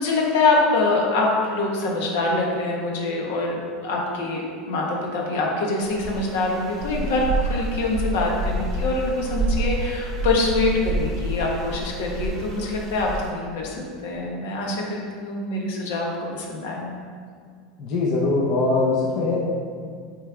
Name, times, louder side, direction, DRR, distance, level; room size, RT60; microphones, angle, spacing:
voice 1, 0.0-17.0, left 2 dB, 75° left, -1 dB, 1.2 m, -24 dB
sound 1, 5.8-13.3, right 2 dB, 30° right, 0.8 m, -28 dB
voice 2, 17.8-19.4, left 3 dB, 45° left, -3 dB, 0.8 m, -22 dB
9.3 x 3.3 x 3.6 m, 2.1 s
supercardioid pair, 155°, 0 cm